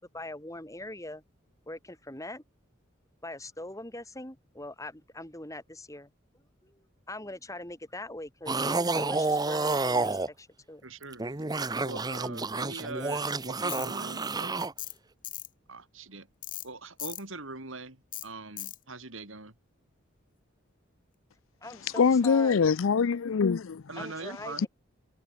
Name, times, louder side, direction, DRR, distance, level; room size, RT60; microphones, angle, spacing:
voice 1, 0.1-1.2 1.7-2.4 3.2-6.1 6.3-10.8 21.6-22.7 23.9-24.7, left 1 dB, 15° left, 6.7 m, -42 dB
sound 1, 8.5-10.3 11.0-14.7, right 3 dB, 20° right, 1.0 m, -29 dB
voice 2, 10.8-11.3 11.8-14.5 15.7-16.3 16.6-19.6 23.9-24.7, right 3 dB, 75° right, 4.3 m, -42 dB
Tools, 13.7-13.9 14.8-15.0 15.2-15.5 16.4-16.7 17.0-17.2 18.1-18.3 18.6-18.8, left 15 dB, 40° left, 1.7 m, -38 dB
voice 3, 22.0-23.8, left 5 dB, 80° left, 0.5 m, -23 dB
head